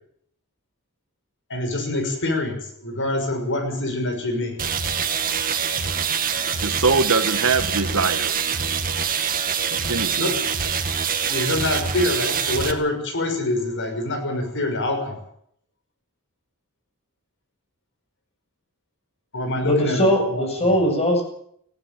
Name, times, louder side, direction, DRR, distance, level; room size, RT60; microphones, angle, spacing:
voice 1, 1.5-4.5 10.2-10.3 11.3-15.2 19.3-20.4, left 1 dB, 55° left, 6 dB, 6.1 m, -25 dB
sound 1, 4.6-12.7, right 7 dB, 40° right, 2.0 m, -25 dB
voice 2, 6.6-8.4 9.9-10.3, right 4 dB, 65° right, 10 dB, 1.7 m, -22 dB
voice 3, 19.6-21.2, equal, 30° left, 4 dB, 7.6 m, -20 dB
20.0 x 16.0 x 9.1 m, 0.67 s
head